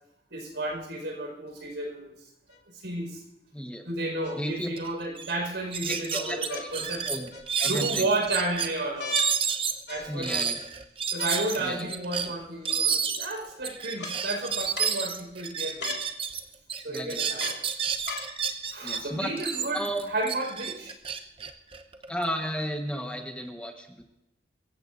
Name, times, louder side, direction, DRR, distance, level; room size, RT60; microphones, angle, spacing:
voice 1, 0.3-2.3 2.7-3.2 3.8-7.1 7.7-9.2 9.9-10.5 11.1-16.0 16.8-17.6 18.7-20.9, right 2 dB, 85° right, 1 dB, 4.9 m, -32 dB
sound 1, 2.5-2.6 4.2-4.9 6.5-6.7 7.3-7.8 9.0-9.3 9.9-10.4 11.2-11.7 12.7-12.8 14.0-14.1 14.8-15.0 15.8-16.1 17.4-17.6 18.1-18.3 19.2-19.3, left 5 dB, 80° left, 2.5 m, -38 dB
voice 2, 3.5-3.8 4.4-4.7 5.8-6.7 7.1-7.3 7.6-8.1 10.1-10.6 11.6-11.9 16.9-17.5 18.8-19.3 19.7-20.1 22.1-24.0, equal, 5° left, 3 dB, 1.2 m, -33 dB
sound 2, 4.8-4.9 5.2-5.3 5.7-8.7 9.1-16.4 16.7-19.0 19.4-22.3, right 7 dB, 30° right, 0.8 m, -30 dB
24.0 x 15.0 x 2.6 m, 0.88 s
head